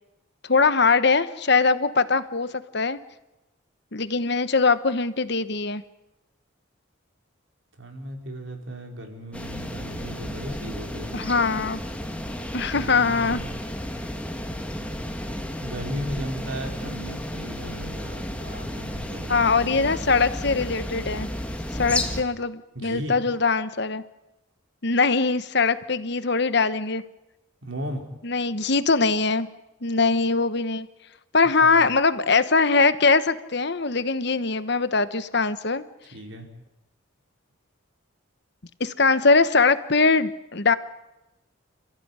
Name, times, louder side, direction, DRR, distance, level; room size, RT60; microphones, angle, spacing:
voice 1, 0.5-3.0 3.9-5.8 11.1-11.8 12.5-13.4 19.3-21.3 21.7-24.0 24.8-27.0 28.2-29.5 29.8-30.9 31.3-35.8 38.8-40.7, left 4 dB, 50° left, 13 dB, 1.2 m, -22 dB
voice 2, 7.8-11.3 12.7-13.6 15.6-19.9 22.7-23.2 27.6-28.0 31.6-31.8 36.1-36.5, equal, 65° right, 3 dB, 4.4 m, -36 dB
sound 1, 9.3-22.2, left 1 dB, 5° left, 1.7 m, -33 dB
29.5 x 15.0 x 9.7 m, 0.96 s
head